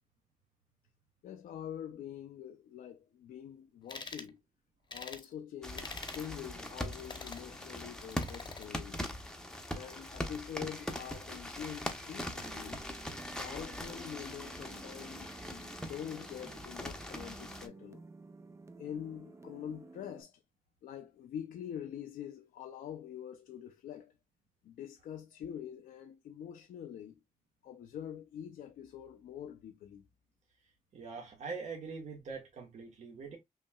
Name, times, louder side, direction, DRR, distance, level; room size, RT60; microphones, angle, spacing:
voice 1, 1.2-4.4 4.9-9.1 9.7-12.8 13.4-18.0 18.8-20.4 20.8-24.1 24.6-27.2 27.6-30.1, left 9 dB, 85° left, 0.6 m, -45 dB
sound 1, 3.9-4.3 4.9-5.3 5.8-6.3 6.9-7.5 8.1-8.7, left 4 dB, 35° left, 0.8 m, -45 dB
sound 2, 5.6-17.7, left 1 dB, 5° left, 0.8 m, -42 dB
sound 3, 12.4-20.2, right 3 dB, 20° right, 0.4 m, -52 dB
voice 2, 30.9-33.4, right 4 dB, 55° right, 1.3 m, -43 dB
5.4 x 2.9 x 2.2 m
cardioid pair, 120°, 14 cm